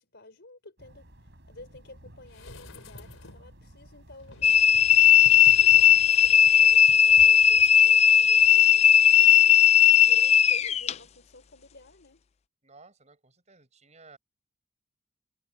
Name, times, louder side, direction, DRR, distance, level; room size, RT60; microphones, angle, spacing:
voice 1, 0.0-4.7 5.1-12.2, left 2 dB, 55° left, 5.0 m, -52 dB
sound 1, 0.8-6.1, equal, 55° right, 5.0 m, -52 dB
sound 2, 2.3-3.6 4.2-8.7 9.0-9.1, left 2 dB, 85° left, 3.9 m, -50 dB
sound 3, 4.4-10.9, left 9 dB, 30° left, 0.4 m, -17 dB
voice 2, 12.6-14.2, right 3 dB, 35° right, 5.7 m, -55 dB
head